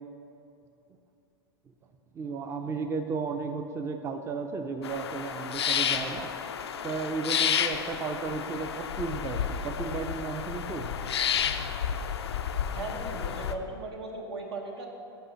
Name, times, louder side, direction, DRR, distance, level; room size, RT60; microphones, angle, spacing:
voice 1, 2.1-6.3 6.8-10.9, right 4 dB, 20° right, 6 dB, 0.4 m, -34 dB
sound 1, 4.8-13.5, left 8 dB, 85° left, 0.4 m, -31 dB
voice 2, 12.7-14.9, right 2 dB, 80° right, 1 dB, 1.2 m, -37 dB
5.5 x 5.4 x 6.2 m, 2.6 s
hypercardioid pair, 100°, 13 cm